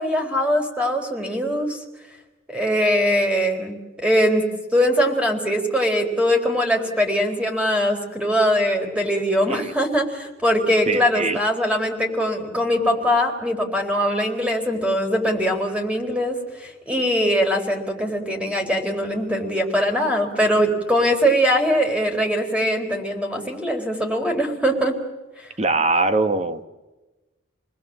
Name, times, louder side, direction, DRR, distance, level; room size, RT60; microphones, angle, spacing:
voice 1, 0.0-1.8 2.5-4.5 4.7-25.0 25.4-25.5, equal, 5° right, 4.2 m, -22 dB
voice 2, 10.9-11.4 25.6-26.6, right 3 dB, 35° right, 1.4 m, -22 dB
29.5 x 20.5 x 7.6 m
head